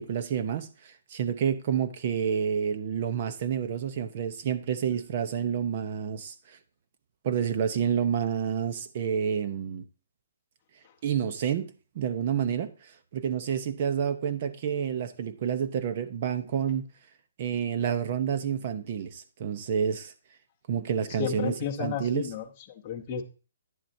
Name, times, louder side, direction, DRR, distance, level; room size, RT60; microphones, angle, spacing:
voice 1, 0.0-6.6 7.2-9.9 11.0-16.9 17.4-20.1 20.7-21.5 21.8-22.3, right 8 dB, 30° right, 0.8 m, -29 dB
voice 2, 21.2-23.2, left 8 dB, 20° left, 1.0 m, -33 dB
10.0 x 7.4 x 2.7 m
hypercardioid pair, 175°, 0 cm